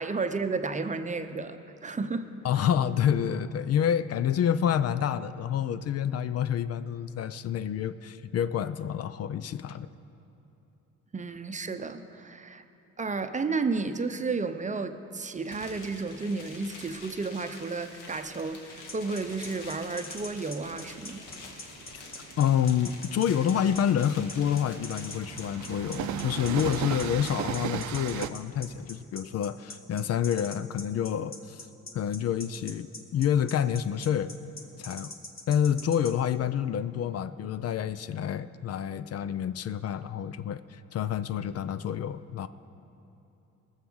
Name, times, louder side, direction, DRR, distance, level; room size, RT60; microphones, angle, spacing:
voice 1, 0.0-2.3 11.1-12.6 13.0-21.3, right 4 dB, 25° right, 9 dB, 0.7 m, -32 dB
voice 2, 2.4-9.9 21.9-22.0 22.4-31.7 31.9-34.3 34.8-35.1 35.5-42.5, left 9 dB, 55° left, 14 dB, 0.5 m, -28 dB
sound 1, 15.4-28.2, left 3 dB, 85° left, 2.0 m, -47 dB
sound 2, 18.9-36.1, left 3 dB, 30° left, 1.5 m, -42 dB
Train, 19.2-28.3, right 11 dB, 70° right, 0.6 m, -37 dB
19.0 x 7.3 x 6.3 m, 2.9 s
cardioid pair, 90°, 30 cm